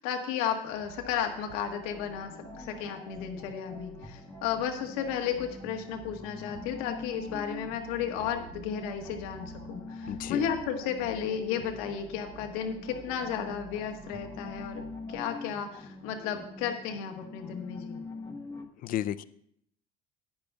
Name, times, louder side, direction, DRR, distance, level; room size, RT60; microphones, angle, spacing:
voice 1, 0.0-14.8 15.1-18.0, left 8 dB, 85° left, 4 dB, 1.5 m, -33 dB
sound 1, 0.7-15.2, right 4 dB, 80° right, 3.5 m, -50 dB
sound 2, 1.9-18.6, left 3 dB, 20° left, 1.3 m, -44 dB
voice 2, 10.1-10.5 18.8-19.2, left 12 dB, 55° left, 14 dB, 0.5 m, -32 dB
15.5 x 10.5 x 2.4 m, 0.68 s
supercardioid pair, 95°, 18 cm